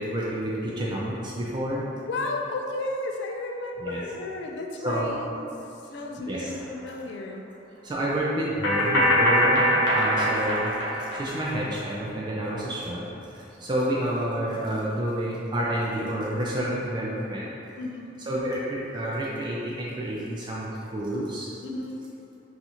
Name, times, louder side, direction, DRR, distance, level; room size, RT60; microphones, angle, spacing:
voice 1, 0.0-1.9 3.8-4.0 4.8-5.1 6.3-6.6 7.8-10.8 11.1-17.5 18.3-21.5, right 1 dB, 25° right, -5 dB, 0.3 m, -29 dB
voice 2, 2.1-5.4 5.9-7.5 17.8-18.0 21.6-22.0, left 2 dB, 65° left, 2 dB, 0.3 m, -33 dB
sound 1, 6.6-6.7 8.6-11.5, equal, 80° left, 0.8 m, -22 dB
2.8 x 2.4 x 4.1 m, 2.9 s
head